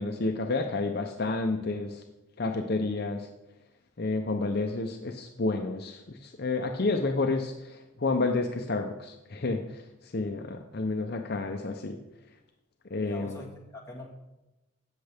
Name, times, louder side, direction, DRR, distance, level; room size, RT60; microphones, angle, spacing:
voice 1, 0.0-2.0 2.4-3.3 4.0-12.0 12.9-13.4, left 3 dB, 50° left, 4 dB, 0.7 m, -30 dB
voice 2, 13.0-14.1, left 1 dB, 15° left, -2 dB, 1.9 m, -42 dB
16.0 x 6.6 x 3.5 m, 0.98 s
head